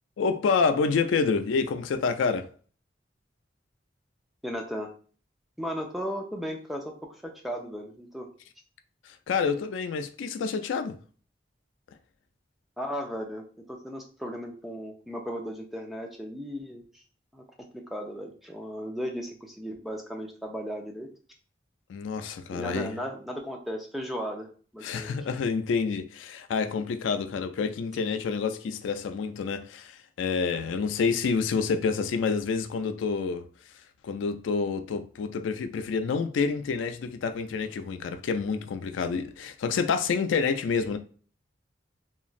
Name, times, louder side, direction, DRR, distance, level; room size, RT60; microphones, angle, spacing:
voice 1, 0.2-2.5 9.0-11.0 21.9-22.9 24.8-33.4 34.0-41.0, left 5 dB, 90° left, 0.3 m, -28 dB
voice 2, 4.4-4.9 5.6-6.8 7.1-8.3 12.8-13.4 13.7-17.0 17.3-17.4 17.9-21.1 22.5-24.5 24.7-25.2, equal, ahead, 0.4 m, -35 dB
3.0 x 2.4 x 2.4 m
head